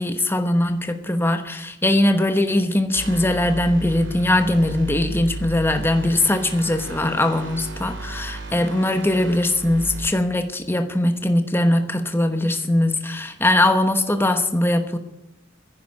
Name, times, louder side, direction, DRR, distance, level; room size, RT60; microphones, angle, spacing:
voice 1, 0.0-15.0, left 1 dB, 10° left, 7 dB, 1.0 m, -21 dB
sound 1, 2.9-10.1, right 2 dB, 75° right, 2.9 m, -34 dB
11.0 x 10.0 x 9.8 m, 0.86 s
head